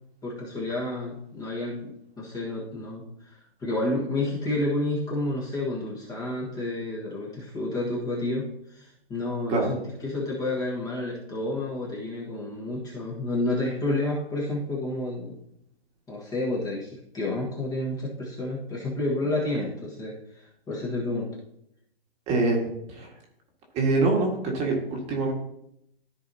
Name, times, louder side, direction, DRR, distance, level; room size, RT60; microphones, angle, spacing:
voice 1, 0.2-15.4 16.1-21.4, left 2 dB, 10° left, -5 dB, 1.5 m, -30 dB
voice 2, 22.3-23.1 23.7-25.3, right 3 dB, 20° right, 0 dB, 1.7 m, -25 dB
14.0 x 4.8 x 2.8 m, 0.77 s
hypercardioid pair, 145°, 31 cm